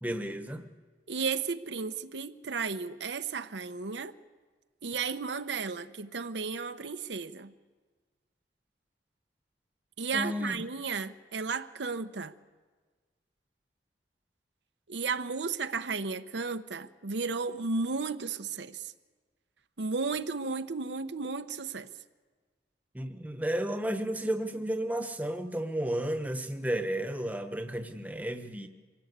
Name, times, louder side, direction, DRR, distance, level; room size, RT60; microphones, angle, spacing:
voice 1, 0.0-0.6 10.1-10.6 22.9-28.7, right 1 dB, 10° right, 1.1 m, -32 dB
voice 2, 1.1-4.1 4.8-7.5 10.0-12.3 14.9-18.9 19.8-21.9, right 4 dB, 80° right, 0.8 m, -34 dB
25.0 x 17.0 x 8.1 m
head